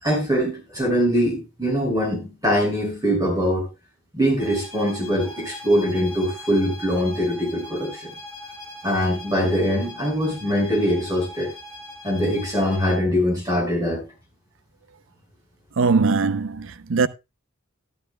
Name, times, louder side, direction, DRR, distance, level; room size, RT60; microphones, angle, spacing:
voice 1, 0.0-3.7 4.1-8.1 8.8-11.5 12.0-14.0, equal, 20° right, 5.4 m, -22 dB
sound 1, 4.4-13.1, left 1 dB, 20° left, 4.3 m, -40 dB
voice 2, 15.8-17.1, right 4 dB, 75° right, 0.6 m, -20 dB
13.0 x 12.5 x 2.2 m
head